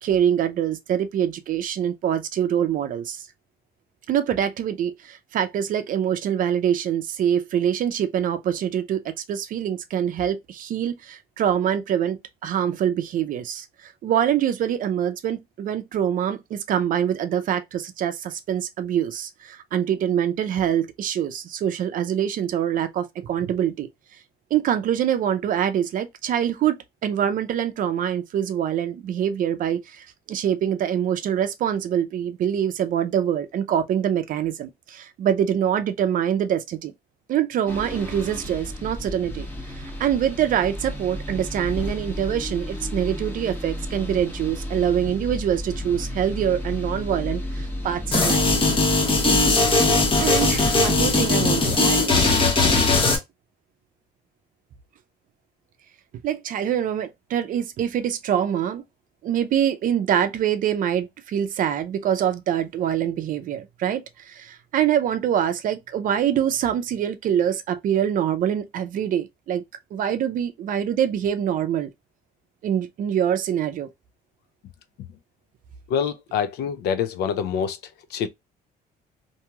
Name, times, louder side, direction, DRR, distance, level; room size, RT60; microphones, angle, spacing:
voice 1, 0.0-3.3 4.1-23.9 24.5-36.9 37.3-39.5 39.8-48.4 50.2-52.5 56.2-58.8 59.2-69.6 69.9-71.9 72.6-73.9, right 9 dB, 55° right, 0.5 m, -25 dB
sound 1, 37.7-51.1, left 1 dB, 15° left, 1.1 m, -32 dB
sound 2, 48.1-53.2, left 3 dB, 30° left, 0.9 m, -19 dB
voice 2, 75.9-77.8 78.1-78.3, left 7 dB, 75° left, 0.5 m, -25 dB
2.9 x 2.6 x 2.3 m
cardioid pair, 110°, 17 cm